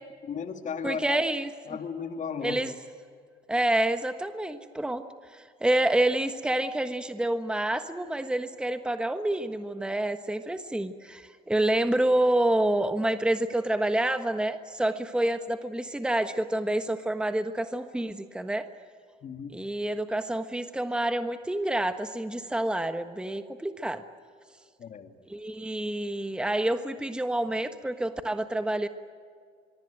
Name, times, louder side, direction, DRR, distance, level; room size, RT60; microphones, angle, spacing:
voice 1, 0.2-1.2 1.7-2.6 19.2-19.5 24.8-25.2, left 6 dB, 45° left, 6 dB, 2.6 m, -35 dB
voice 2, 0.8-1.5 2.4-2.7 3.5-5.0 5.3-18.7 19.5-24.0 25.3-28.9, right 1 dB, 5° right, 8 dB, 1.3 m, -28 dB
24.0 x 23.5 x 9.2 m, 2.1 s
cardioid pair, 110°, 17 cm